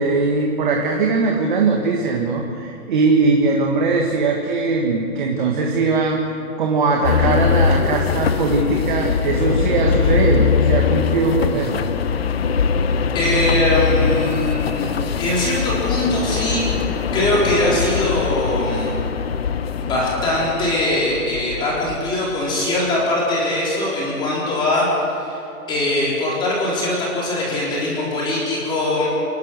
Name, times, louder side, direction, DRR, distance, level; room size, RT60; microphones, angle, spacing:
voice 1, 0.0-11.8, right 3 dB, 35° right, 1 dB, 1.6 m, -20 dB
sound 1, 7.0-22.2, left 6 dB, 45° left, 0.7 m, -21 dB
voice 2, 13.1-14.9 15.2-16.7 17.1-18.9 19.8-25.4 25.7-29.1, left 1 dB, 10° left, -6 dB, 3.9 m, -21 dB
28.0 x 11.5 x 8.1 m, 2.8 s
hypercardioid pair, 170°, 45 cm